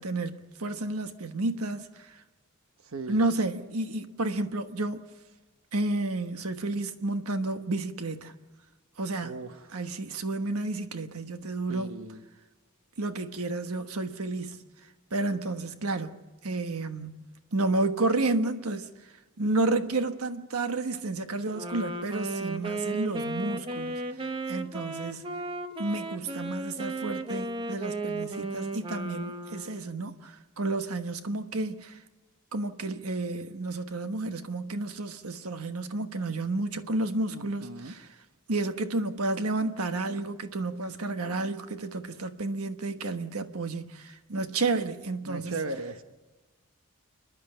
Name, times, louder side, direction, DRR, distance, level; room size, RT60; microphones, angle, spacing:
voice 1, 0.0-2.2 3.1-5.0 5.7-8.3 9.0-9.4 9.7-12.0 13.0-14.6 15.1-17.3 17.5-18.9 19.4-25.2 25.8-32.0 32.5-38.0 38.5-45.5, right 2 dB, 90° right, 1.3 m, -31 dB
voice 2, 2.8-3.2 9.2-9.8 11.7-12.2 37.3-38.0 45.2-46.0, right 3 dB, 70° right, 1.1 m, -37 dB
Wind instrument woodwind instrument, 21.5-29.9, right 2 dB, 25° right, 1.1 m, -34 dB
29.5 x 11.5 x 9.9 m
head